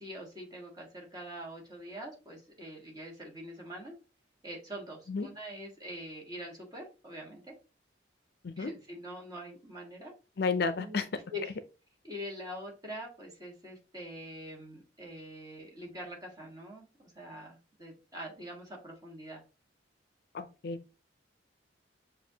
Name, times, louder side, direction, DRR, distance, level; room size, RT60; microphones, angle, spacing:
voice 1, 0.0-3.9 4.4-7.5 8.6-10.1 10.7-11.6 12.0-19.4, equal, 20° right, 1.5 m, -44 dB
voice 2, 10.4-11.0 20.3-20.8, left 4 dB, 60° left, 0.5 m, -31 dB
7.1 x 2.6 x 2.8 m
head